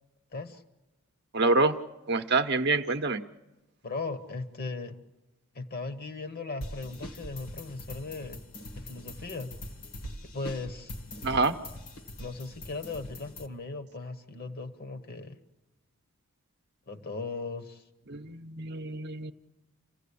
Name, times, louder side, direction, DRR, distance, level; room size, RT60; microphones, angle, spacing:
voice 1, 0.3-0.6 3.8-5.0 5.5-8.4 8.8-9.5 10.3-10.9 12.2-15.4 16.9-17.8, left 3 dB, 45° left, 9 dB, 1.1 m, -38 dB
voice 2, 1.3-1.8 2.1-3.2 11.2-11.6 18.1-19.3, right 3 dB, 50° right, 8 dB, 0.7 m, -26 dB
sound 1, 6.6-13.5, left 1 dB, 70° left, 1.8 m, -43 dB
28.5 x 16.0 x 8.4 m, 1.1 s
head